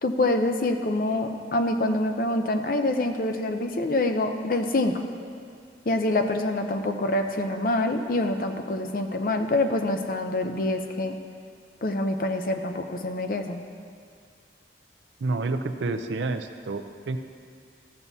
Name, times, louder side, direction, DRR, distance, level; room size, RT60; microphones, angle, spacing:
voice 1, 0.0-4.9 5.9-11.2 11.8-13.6, left 2 dB, 50° left, 6 dB, 0.6 m, -26 dB
voice 2, 15.2-17.2, right 3 dB, 85° right, 8 dB, 0.5 m, -29 dB
13.5 x 7.2 x 2.7 m, 2.2 s
head